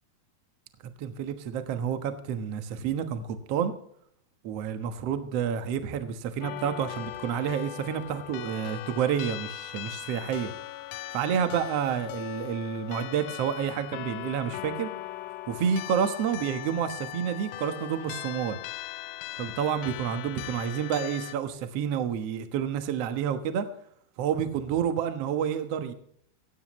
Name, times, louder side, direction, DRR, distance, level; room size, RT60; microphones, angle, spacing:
voice 1, 0.8-3.7 4.4-10.5 11.1-14.9 15.5-18.6 19.4-23.7 24.2-25.9, right 8 dB, 80° right, 8 dB, 1.4 m, -29 dB
sound 1, 6.4-21.4, left 15 dB, 85° left, 2.9 m, -39 dB
16.5 x 15.5 x 3.1 m, 0.67 s
omnidirectional pair, 4.9 m